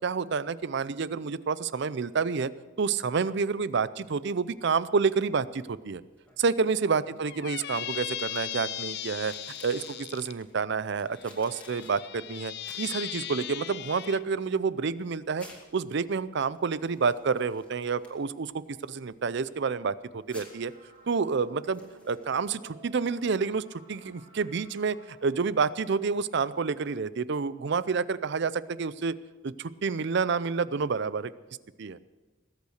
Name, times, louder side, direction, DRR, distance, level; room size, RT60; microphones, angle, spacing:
voice 1, 0.0-2.5 2.8-6.0 6.4-9.3 9.6-15.5 15.7-20.7 21.1-21.8 22.1-29.1 29.4-31.3 31.8-32.0, right 5 dB, 55° right, 17 dB, 0.5 m, -29 dB
sound 1, 4.4-22.3, left 1 dB, 5° left, 2.4 m, -58 dB
Squeak, 7.3-10.3 11.2-14.2, left 12 dB, 50° left, 0.5 m, -38 dB
sound 2, 20.3-27.2, right 2 dB, 30° right, 3.1 m, -56 dB
20.0 x 8.4 x 6.5 m, 1.3 s
head